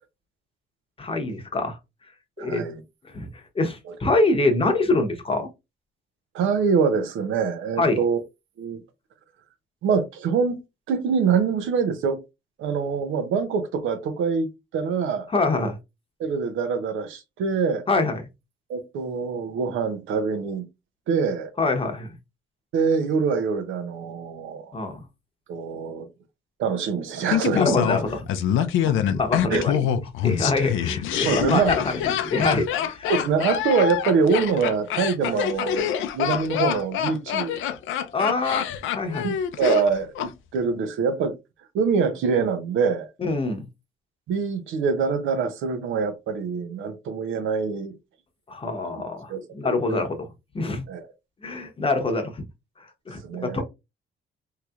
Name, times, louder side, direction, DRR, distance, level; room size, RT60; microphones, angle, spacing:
voice 1, 1.0-1.8 2.4-2.6 3.1-3.3 3.5-5.5 7.8-8.0 15.3-15.8 17.9-18.2 21.6-22.1 24.7-25.0 27.5-28.2 28.8-29.9 30.2-31.9 32.2-33.1 38.1-38.7 38.9-39.3 43.2-43.7 48.5-50.2 50.5-50.8 51.4-52.4 53.1-53.6, left 3 dB, 25° left, 0.8 m, -24 dB
voice 2, 2.4-2.8 3.9-4.0 6.3-8.2 8.6-8.8 9.8-10.6 10.9-12.2 12.6-14.5 14.7-15.3 16.2-17.8 18.7-20.7 21.1-21.5 22.7-24.8 25.5-26.1 26.6-27.8 29.5-29.6 30.6-30.7 31.2-31.7 33.1-37.6 39.2-41.4 41.7-43.1 44.3-48.0 49.3-50.1 50.9-51.1 53.2-53.6, right 5 dB, 85° right, 0.7 m, -25 dB
Laughter, 27.3-40.3 40.6-40.7, left 9 dB, 80° left, 0.5 m, -26 dB
3.1 x 2.8 x 2.4 m
cardioid pair, 90°, 20 cm